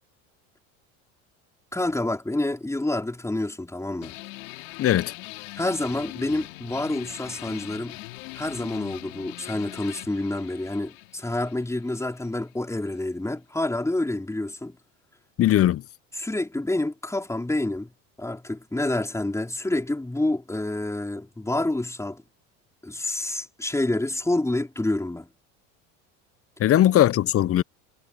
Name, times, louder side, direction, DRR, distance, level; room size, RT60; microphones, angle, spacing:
voice 1, 1.7-4.1 5.5-8.0 8.3-14.8 16.2-17.9 18.2-22.2 22.8-25.3, left 2 dB, 10° left, 5.0 m, -28 dB
sound 1, 4.0-13.1, left 23 dB, 80° left, 6.4 m, -42 dB
voice 2, 4.8-5.1 15.4-15.8 26.6-27.6, left 12 dB, 40° left, 0.8 m, -19 dB
supercardioid pair, 95°, 37 cm